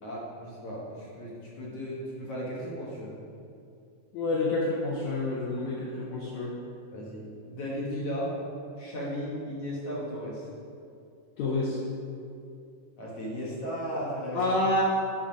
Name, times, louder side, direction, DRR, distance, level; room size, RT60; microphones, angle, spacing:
voice 1, 0.0-3.1 6.9-8.3 8.8-10.4 13.0-14.6, equal, 60° left, -6 dB, 1.7 m, -35 dB
voice 2, 4.1-6.5 11.4-11.8 14.3-14.8, left 2 dB, 85° left, -4 dB, 1.5 m, -28 dB
8.9 x 4.1 x 5.1 m, 2.5 s
omnidirectional pair, 4.2 m